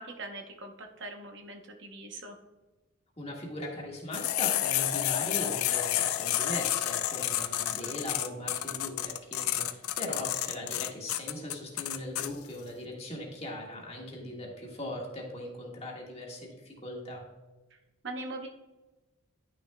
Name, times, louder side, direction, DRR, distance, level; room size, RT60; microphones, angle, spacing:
voice 1, 0.0-2.4 7.7-7.9 18.0-18.5, right 2 dB, 55° right, 3 dB, 0.8 m, -41 dB
voice 2, 3.2-17.2, left 1 dB, 30° left, -2 dB, 1.6 m, -39 dB
sound 1, 4.1-12.3, left 12 dB, 90° left, 0.5 m, -30 dB
10.5 x 6.4 x 2.2 m, 1.1 s
head